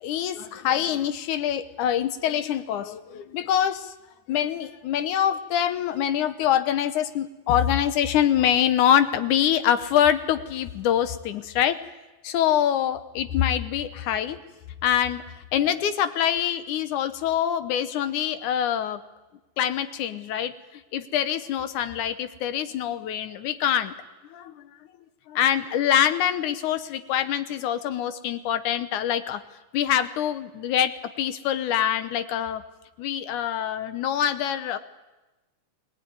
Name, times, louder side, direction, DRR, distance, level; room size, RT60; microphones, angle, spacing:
voice 1, 0.0-3.9 4.3-11.8 12.2-14.4 14.8-19.0 19.6-23.9 24.3-24.8 25.3-29.4 29.7-32.6 33.0-34.8, left 10 dB, 85° left, 11 dB, 2.5 m, -25 dB
21.0 x 19.0 x 9.5 m, 1.1 s
omnidirectional pair, 3.5 m